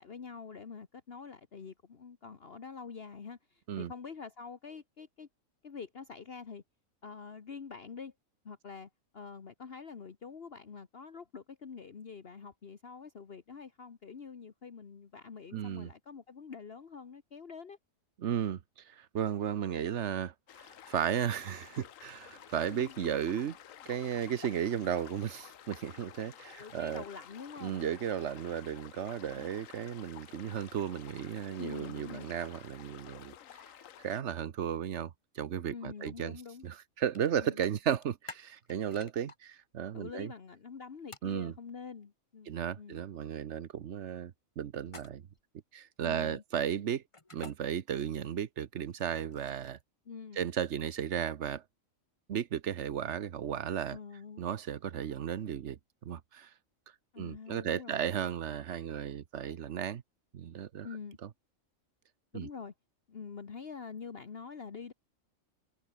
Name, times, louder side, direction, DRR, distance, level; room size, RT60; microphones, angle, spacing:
voice 1, 0.0-5.3 5.6-6.6 7.0-8.1 8.4-17.8 22.7-23.1 25.9-26.1 26.6-27.8 29.3-29.5 31.6-32.3 35.7-36.6 37.4-37.6 39.9-43.0 46.0-46.4 50.0-50.4 53.9-54.4 57.1-58.1 60.8-61.2 62.3-62.7 63.1-64.9, left 5 dB, 45° left, 1.5 m, -46 dB
voice 2, 15.5-15.9 18.2-23.6 23.9-27.0 27.6-33.3 34.0-36.4 36.6-40.3 41.2-41.5 42.5-45.2 45.7-47.0 47.3-49.8 50.4-51.6 52.3-54.0 54.4-56.5 57.2-60.0 60.3-60.9 61.2-61.3 62.3-62.5, right 9 dB, 60° right, 1.2 m, -35 dB
sound 1, 20.5-34.2, left 10 dB, 75° left, 1.2 m, -52 dB
sound 2, 37.1-37.3 37.6-39.4 41.1-41.3 44.8-45.4 47.1-47.5 48.9-49.8, left 3 dB, 25° left, 1.6 m, -49 dB
omnidirectional pair, 1.4 m